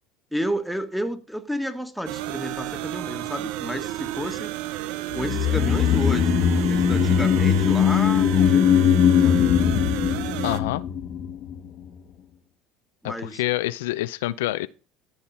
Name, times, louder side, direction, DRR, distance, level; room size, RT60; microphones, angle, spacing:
voice 1, 0.3-4.5 5.1-6.3 6.7-9.4 13.0-13.4, equal, ahead, 1.8 m, -31 dB
sound 1, 2.1-10.6, right 15 dB, 75° right, 0.8 m, -32 dB
sound 2, 5.2-11.6 11.8-11.9, left 8 dB, 50° left, 1.1 m, -20 dB
voice 2, 10.4-10.8 13.0-14.7, left 16 dB, 90° left, 0.5 m, -27 dB
14.0 x 5.5 x 4.3 m
supercardioid pair, 95°, 0 cm